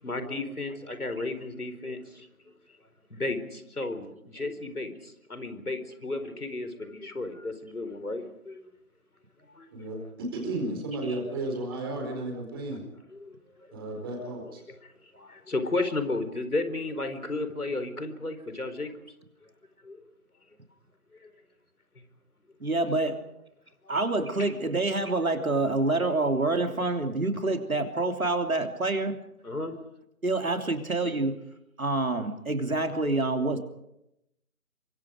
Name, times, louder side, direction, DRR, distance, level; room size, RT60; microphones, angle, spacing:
voice 1, 0.0-2.3 3.1-8.7 9.5-9.7 13.1-13.8 14.7-14.8 15.1-18.9 19.4-19.5 19.8-20.0 21.1-21.3 23.8-24.5 29.4-29.7, left 2 dB, 75° left, 9 dB, 4.5 m, -34 dB
voice 2, 9.7-12.8 13.7-14.6, right 2 dB, 15° right, 2 dB, 4.5 m, -33 dB
voice 3, 22.6-23.2 23.9-29.2 30.2-31.4 31.8-33.6, right 2 dB, 65° right, 5 dB, 3.3 m, -27 dB
29.0 x 24.5 x 5.2 m, 0.83 s
figure-of-eight pair, 160°, 45 cm